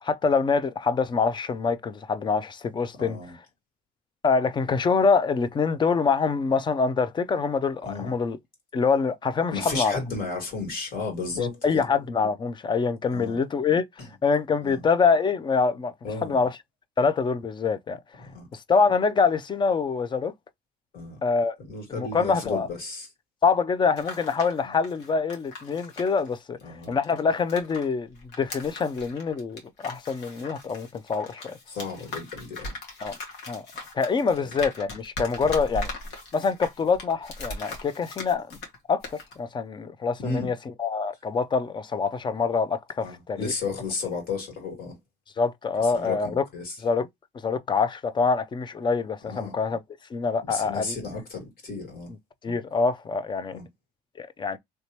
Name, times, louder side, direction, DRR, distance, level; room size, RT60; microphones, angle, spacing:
voice 1, 0.0-3.2 4.2-8.4 8.7-10.0 11.4-13.8 14.2-15.9 16.2-16.6 17.0-18.0 18.5-20.3 21.2-21.6 21.9-22.7 23.4-26.6 26.9-28.1 28.4-31.6 33.0-33.2 33.5-33.6 33.9-35.9 36.3-38.6 38.9-39.0 39.4-43.5 45.4-46.4 46.8-47.1 47.4-49.8 50.1-51.0 52.4-53.6 54.2-54.6, left 5 dB, 25° left, 0.4 m, -25 dB
voice 2, 3.0-3.4 7.8-8.1 9.5-11.8 13.1-13.4 14.6-14.8 16.0-16.4 18.2-18.5 20.9-21.2 21.7-23.1 24.6-24.7 26.6-27.0 31.7-32.7 35.4-35.5 40.2-40.5 43.0-45.0 45.8-46.8 49.2-49.5 50.4-52.1 53.5-53.7, left 4 dB, 60° left, 2.3 m, -33 dB
sound 1, 23.8-27.9 28.2-38.8 39.0-39.3, left 2 dB, 80° left, 1.6 m, -39 dB
3.3 x 2.8 x 2.9 m
cardioid pair, 110°, 17 cm